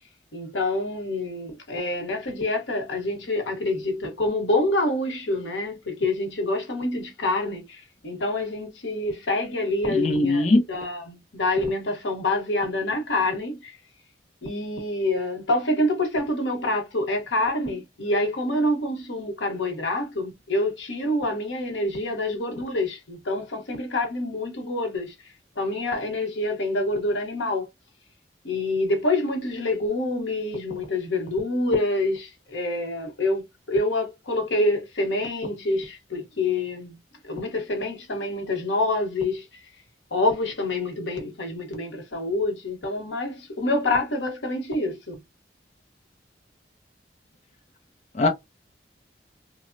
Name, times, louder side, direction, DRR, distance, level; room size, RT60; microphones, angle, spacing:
voice 1, 0.3-13.8 14.4-25.1 25.6-27.7 28.4-37.0 37.2-39.6 40.1-45.2, left 2 dB, 85° left, 1.0 m, -26 dB
voice 2, 9.9-10.6 48.1-48.3, left 2 dB, 35° left, 0.4 m, -20 dB
3.0 x 2.0 x 2.5 m
head